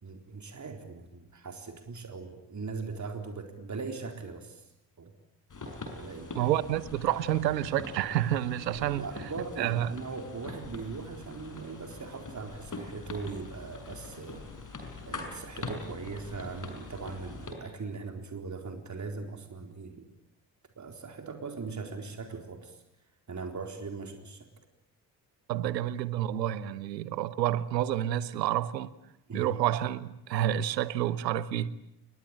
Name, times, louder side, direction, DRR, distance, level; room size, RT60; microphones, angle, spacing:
voice 1, 0.0-4.6 5.0-5.1 6.0-6.5 8.8-14.5 15.1-20.1 20.8-22.8 23.3-24.5 29.3-29.5, right 4 dB, 35° right, 4.1 m, -40 dB
sound 1, 5.5-17.5, left 3 dB, 40° left, 6.7 m, -43 dB
voice 2, 6.4-9.1 9.6-9.9 25.5-28.9 29.3-31.7, right 12 dB, 85° right, 1.0 m, -29 dB
29.0 x 22.0 x 8.9 m
figure-of-eight pair, 40°, 50 cm